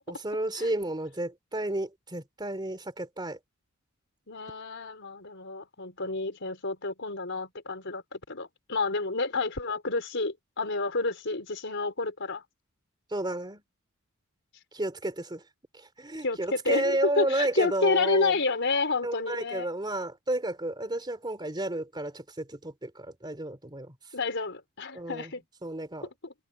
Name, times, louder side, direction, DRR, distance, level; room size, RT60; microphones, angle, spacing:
voice 1, 0.1-3.4 13.1-13.6 14.7-15.4 15.7-18.4 19.0-23.9 24.9-25.3 25.6-26.1, right 1 dB, 20° right, 3.2 m, -32 dB
voice 2, 4.3-12.4 16.2-19.7 24.1-25.4 26.2-26.3, left 3 dB, 60° left, 4.8 m, -30 dB
head